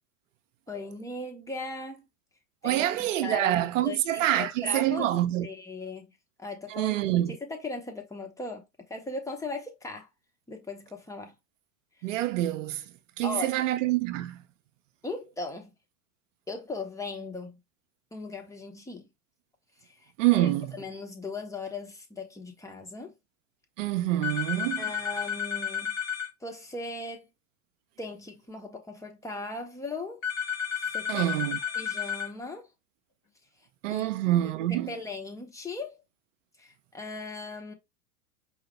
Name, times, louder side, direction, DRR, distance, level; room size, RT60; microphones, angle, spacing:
voice 1, 0.7-2.1 2.6-5.1 5.4-6.1 6.4-7.0 7.3-10.1 10.5-11.3 13.2-13.6 15.0-15.7 16.5-17.6 18.1-19.1 20.0-23.1 24.8-26.0 26.4-27.3 28.0-30.2 30.9-31.3 31.7-32.7 33.9-34.1 34.4-36.0 36.6-37.7, left 3 dB, 5° left, 0.7 m, -38 dB
voice 2, 2.6-5.5 6.7-7.3 12.0-12.8 13.2-14.4 20.2-20.7 23.8-24.8 31.1-31.6 33.8-34.9, right 14 dB, 55° right, 0.5 m, -26 dB
sound 1, 24.2-26.3 30.2-32.3, left 7 dB, 30° left, 1.4 m, -32 dB
4.7 x 2.0 x 3.3 m
hypercardioid pair, 100°, 46 cm